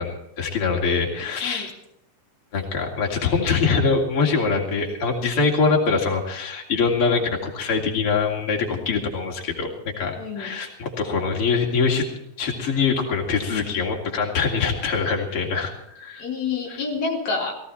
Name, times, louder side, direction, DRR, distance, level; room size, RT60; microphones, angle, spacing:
voice 1, 0.0-1.7 2.5-9.7 10.0-12.1 12.4-16.3 16.7-16.8, left 5 dB, 45° left, 0 dB, 3.6 m, -23 dB
voice 2, 10.2-10.5 16.2-17.6, left 4 dB, 65° left, -1 dB, 3.7 m, -28 dB
18.5 x 16.0 x 4.3 m, 0.82 s
omnidirectional pair, 3.4 m